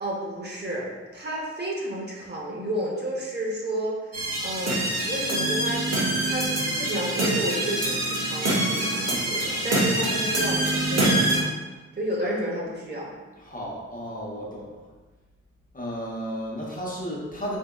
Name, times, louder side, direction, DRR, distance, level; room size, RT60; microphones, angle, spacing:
voice 1, 0.0-11.5 12.0-13.1, right 1 dB, 35° right, -4 dB, 0.7 m, -31 dB
sound 1, 4.1-11.4, right 1 dB, 60° right, 1.0 m, -25 dB
voice 2, 13.4-14.7 15.7-17.6, equal, 30° left, -4 dB, 0.8 m, -33 dB
4.0 x 3.5 x 2.2 m, 1.3 s
wide cardioid pair, 100°, 29 cm